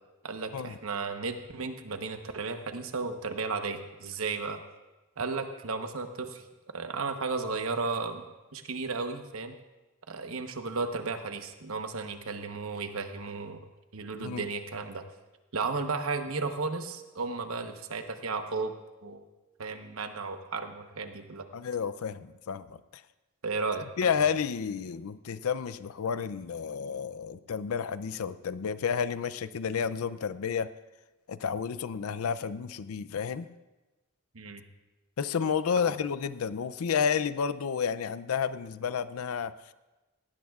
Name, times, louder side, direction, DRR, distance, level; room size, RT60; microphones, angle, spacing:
voice 1, 0.2-4.6 5.2-6.4 6.7-8.2 8.5-9.6 10.1-13.6 13.9-15.0 15.5-18.7 19.0-19.2 19.6-21.4 23.4-24.1 34.3-34.6, right 4 dB, 70° right, 7 dB, 1.0 m, -34 dB
voice 2, 21.5-23.0 24.0-30.7 31.3-33.5 35.2-39.7, left 6 dB, 80° left, 15 dB, 0.4 m, -31 dB
17.5 x 17.0 x 2.4 m, 1.1 s
head